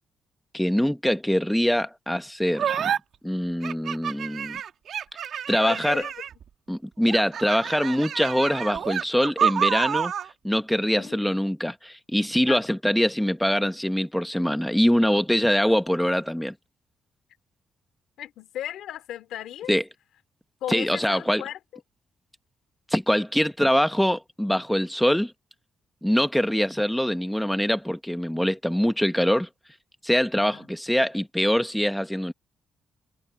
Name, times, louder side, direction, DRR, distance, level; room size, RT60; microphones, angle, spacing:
voice 1, 0.5-2.9 3.2-4.6 5.5-6.0 6.7-10.1 10.4-16.5 19.7-19.8 20.7-21.4 22.9-25.3 26.0-29.5 30.0-32.3, equal, 5° left, 1.2 m, -23 dB
sound 1, 2.6-3.0 3.6-6.4 7.1-10.3, right 8 dB, 70° right, 2.1 m, -28 dB
voice 2, 5.6-6.1 10.9-11.4 12.5-12.6 18.2-19.7 20.6-21.6 30.5-30.7, left 11 dB, 85° left, 2.9 m, -35 dB
cardioid pair, 85°, 0 cm